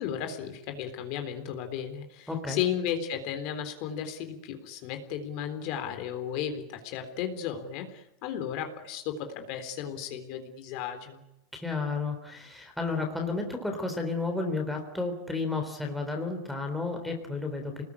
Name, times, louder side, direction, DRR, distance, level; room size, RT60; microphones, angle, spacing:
voice 1, 0.0-11.2, left 9 dB, 40° left, 6 dB, 3.7 m, -34 dB
voice 2, 2.3-2.6 11.5-17.8, left 3 dB, ahead, 2 dB, 3.7 m, -32 dB
30.0 x 20.0 x 9.9 m, 0.87 s
supercardioid pair, 175°, 0 cm